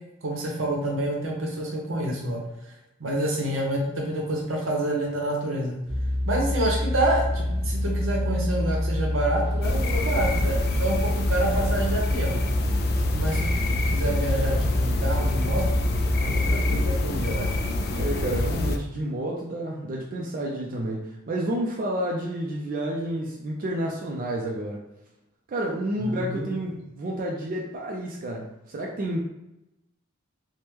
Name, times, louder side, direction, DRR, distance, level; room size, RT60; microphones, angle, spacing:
voice 1, 0.2-2.4 3.0-5.8 6.3-12.4 13.1-15.6 16.2-17.5 26.0-26.5, right 1 dB, 80° right, 0 dB, 0.8 m, -28 dB
sound 1, 5.9-17.0, left 1 dB, 5° left, 0.9 m, -26 dB
sound 2, 9.6-18.8, left 2 dB, 50° left, 0.3 m, -27 dB
voice 2, 18.0-24.8 25.5-29.2, right 1 dB, 45° right, -1 dB, 0.4 m, -30 dB
3.3 x 2.1 x 2.9 m, 0.91 s
head